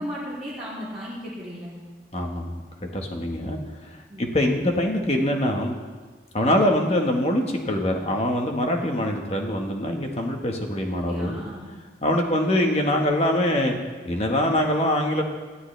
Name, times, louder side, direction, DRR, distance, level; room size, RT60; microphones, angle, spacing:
voice 1, 0.0-1.7 4.1-4.3 11.0-11.7 12.3-12.7, equal, 5° right, -11 dB, 3.4 m, -35 dB
voice 2, 2.1-3.6 3.9-5.8 6.3-11.4 12.0-13.8 14.0-15.2, left 1 dB, 35° left, 2 dB, 1.6 m, -24 dB
20.0 x 13.0 x 3.4 m, 1.4 s
head